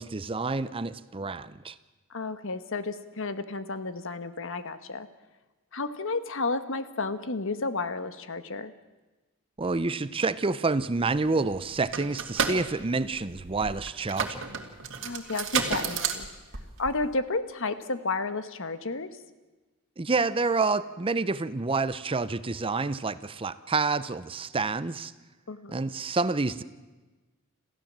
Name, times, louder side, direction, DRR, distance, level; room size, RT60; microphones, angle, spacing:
voice 1, 0.0-1.7 9.6-14.5 20.0-25.1 25.7-26.6, right 3 dB, 25° right, 15 dB, 0.6 m, -28 dB
voice 2, 2.1-5.1 5.7-8.7 15.0-16.3 16.8-19.1 25.5-25.8, left 3 dB, 65° left, 11 dB, 1.3 m, -32 dB
sound 1, 11.2-11.3 11.5-17.1, right 6 dB, 60° right, 2.2 m, -31 dB
27.5 x 15.0 x 7.5 m, 1.2 s
head